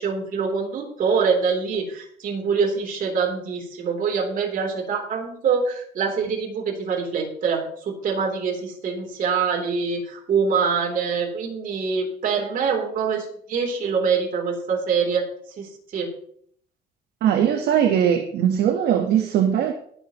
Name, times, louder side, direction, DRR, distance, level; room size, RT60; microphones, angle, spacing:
voice 1, 0.0-15.2 15.6-16.1, right 5 dB, 55° right, 2 dB, 3.3 m, -24 dB
voice 2, 17.2-19.7, right 9 dB, 70° right, 4 dB, 1.2 m, -20 dB
20.5 x 7.1 x 3.0 m, 0.62 s
cardioid pair, 110°, 17 cm